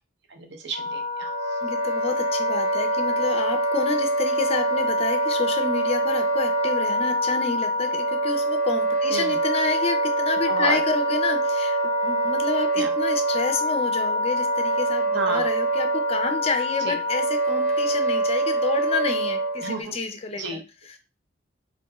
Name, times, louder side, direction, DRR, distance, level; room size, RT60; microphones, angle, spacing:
voice 1, 0.3-1.3 9.1-9.4 10.5-10.8 12.7-12.9 15.1-15.5 16.8-17.0 19.6-19.9 20.3-20.6, right 4 dB, 55° right, 4 dB, 0.7 m, -31 dB
Wind instrument woodwind instrument, 0.7-19.8, right 1 dB, 85° right, 1.4 m, -24 dB
voice 2, 1.6-21.0, left 4 dB, 30° left, 6 dB, 0.4 m, -29 dB
3.5 x 2.9 x 2.3 m, 0.29 s
head